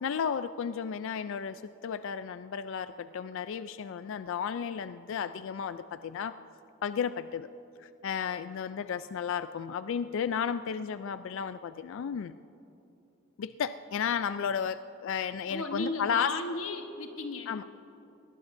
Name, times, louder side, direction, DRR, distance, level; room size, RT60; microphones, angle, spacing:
voice 1, 0.0-6.3 6.8-7.5 7.8-12.3 13.4-16.3 17.5-17.6, left 7 dB, 65° left, 12 dB, 0.3 m, -33 dB
voice 2, 15.5-17.5, left 2 dB, 85° left, 4 dB, 1.1 m, -35 dB
20.5 x 19.0 x 2.6 m, 2.9 s
head